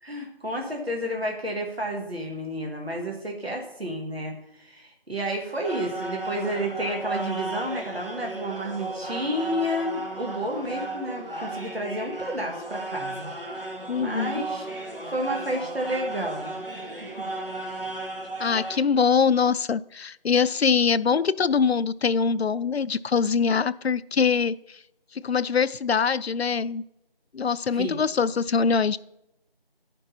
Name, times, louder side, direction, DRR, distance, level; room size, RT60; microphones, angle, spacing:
voice 1, 0.0-13.3 14.0-14.7 15.1-16.6 17.0-17.2 27.7-28.0, equal, 80° right, 0 dB, 2.0 m, -31 dB
sound 1, 5.6-18.8, right 2 dB, 60° right, 1.9 m, -34 dB
voice 2, 13.9-14.4 18.4-24.8 25.1-26.8 27.3-29.0, left 6 dB, 90° left, 16 dB, 0.5 m, -23 dB
11.0 x 5.3 x 4.2 m, 0.83 s
figure-of-eight pair, 180°, 30 cm